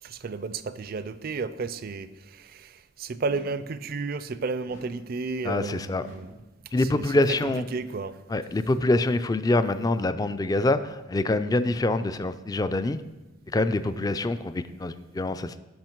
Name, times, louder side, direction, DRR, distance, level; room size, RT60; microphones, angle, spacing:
voice 1, 0.0-6.3 6.7-8.2, right 4 dB, 50° right, 14 dB, 0.4 m, -33 dB
sound 1, 3.3-3.8 4.7-5.2 6.0-6.5 7.4-7.9, left 2 dB, 85° left, 2.1 m, -50 dB
voice 2, 5.4-6.0 6.7-7.6 8.3-13.0 13.5-15.6, left 2 dB, 20° left, 12 dB, 0.3 m, -25 dB
12.0 x 5.8 x 4.5 m, 1.1 s
head